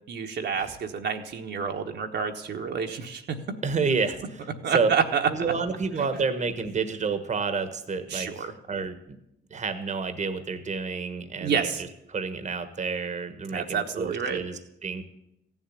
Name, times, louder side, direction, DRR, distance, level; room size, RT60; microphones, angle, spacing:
voice 1, 0.1-3.4 4.6-5.5 6.0-6.1 8.1-8.5 11.4-11.8 13.5-14.4, right 6 dB, 60° right, 3 dB, 1.3 m, -28 dB
voice 2, 3.6-4.9 5.3-9.0 9.5-15.0, right 4 dB, 35° right, 10 dB, 1.3 m, -29 dB
15.0 x 7.3 x 10.0 m, 0.82 s
cardioid pair, 90°, 20 cm